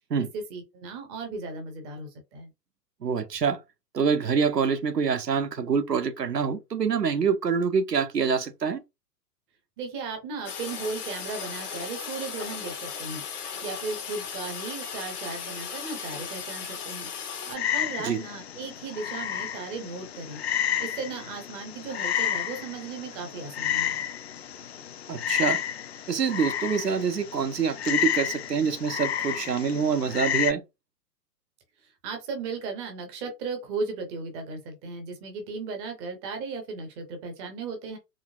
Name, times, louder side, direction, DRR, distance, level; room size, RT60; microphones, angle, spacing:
voice 1, 0.2-2.5 9.8-13.2 13.6-17.1 17.5-20.4 20.8-24.1 31.8-38.0, right 4 dB, 15° right, 0.5 m, -36 dB
voice 2, 3.0-3.6 3.9-8.8 18.0-18.2 25.1-25.6 26.1-30.6, right 6 dB, 80° right, 0.8 m, -26 dB
Toilet flush, 10.5-17.6, left 7 dB, 70° left, 0.9 m, -36 dB
Frog, 17.6-30.5, left 10 dB, 45° left, 0.4 m, -31 dB
4.1 x 2.8 x 2.3 m
figure-of-eight pair, 105°, 48 cm